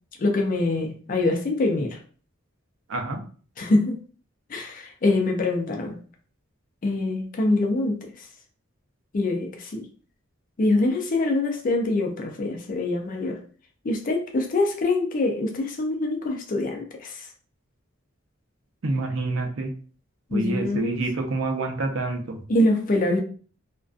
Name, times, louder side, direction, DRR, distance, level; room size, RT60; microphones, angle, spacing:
voice 1, 0.2-2.0 3.6-4.0 4.5-6.0 6.8-8.0 9.1-9.9 10.6-13.4 13.8-17.3 20.3-21.0 22.5-23.2, left 2 dB, 45° left, 0.4 m, -24 dB
voice 2, 2.9-3.2 18.8-19.7 20.3-22.4, right 2 dB, 85° right, 0.6 m, -27 dB
2.4 x 2.2 x 2.3 m
head